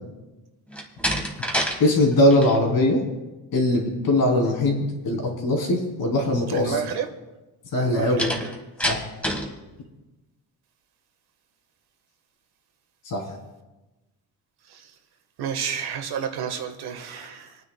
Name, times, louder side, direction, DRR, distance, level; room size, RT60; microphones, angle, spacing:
Slam, 0.7-1.8 2.1-2.6 8.2-9.5, equal, 5° left, 1.4 m, -27 dB
voice 1, 1.8-3.0 3.5-6.8 7.7-8.3 8.8-9.0 13.0-13.2, left 1 dB, 60° left, 0 dB, 3.1 m, -21 dB
voice 2, 6.5-7.1 7.8-8.2 14.7-14.9 15.4-17.6, right 7 dB, 70° right, 5 dB, 1.4 m, -30 dB
28.0 x 9.4 x 2.2 m, 1.1 s
cardioid pair, 135°, 40 cm